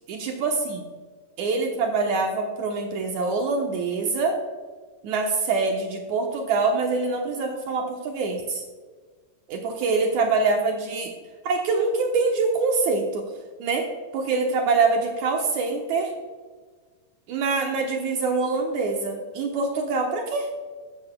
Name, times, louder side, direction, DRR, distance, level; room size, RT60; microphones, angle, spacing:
voice 1, 0.1-0.8 1.4-4.4 5.0-8.6 9.5-11.1 11.4-13.2 13.6-13.9 14.1-16.1 17.3-20.5, right 4 dB, 70° right, 2 dB, 2.4 m, -24 dB
13.5 x 13.0 x 2.3 m, 1.5 s
omnidirectional pair, 3.6 m